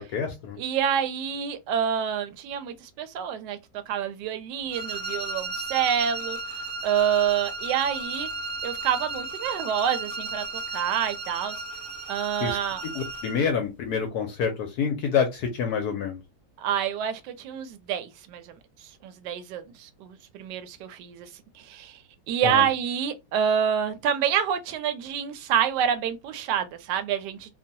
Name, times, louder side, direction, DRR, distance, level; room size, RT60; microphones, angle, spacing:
voice 1, 0.0-0.6 12.4-12.6 12.9-16.2 22.4-22.7, left 6 dB, 70° left, 1.0 m, -27 dB
voice 2, 0.6-3.6 3.9-6.4 6.8-8.3 8.6-10.4 10.7-11.6 12.1-12.8 16.6-18.5 19.0-21.3 21.5-22.0 22.3-27.5, right 8 dB, 75° right, 1.1 m, -27 dB
sound 1, 4.7-13.4, right 3 dB, 25° right, 0.6 m, -34 dB
3.0 x 2.2 x 2.6 m
omnidirectional pair, 2.0 m